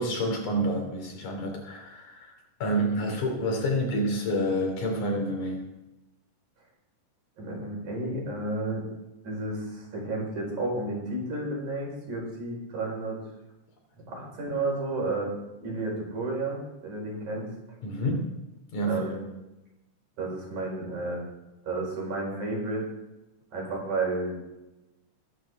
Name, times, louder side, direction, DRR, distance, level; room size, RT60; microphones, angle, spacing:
voice 1, 0.0-5.7 17.8-18.4 18.7-19.2, equal, 70° left, 2 dB, 4.3 m, -28 dB
voice 2, 7.4-8.8 9.2-13.2 14.1-15.3 15.6-17.5 18.8-19.2 20.2-21.2 21.7-22.9 23.5-24.5, right 2 dB, 70° right, -2 dB, 6.1 m, -32 dB
21.5 x 10.5 x 3.6 m, 0.98 s
omnidirectional pair, 3.5 m